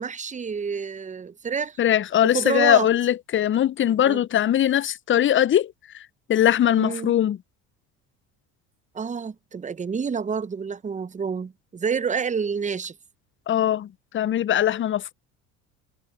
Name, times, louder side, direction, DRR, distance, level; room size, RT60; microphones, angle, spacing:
voice 1, 0.0-1.8 2.2-2.9 4.1-4.2 6.8-7.1 8.9-13.0, right 6 dB, 15° right, 0.7 m, -28 dB
voice 2, 1.8-7.4 13.5-15.1, left 11 dB, 30° left, 0.6 m, -21 dB
hypercardioid pair, 70°, 43 cm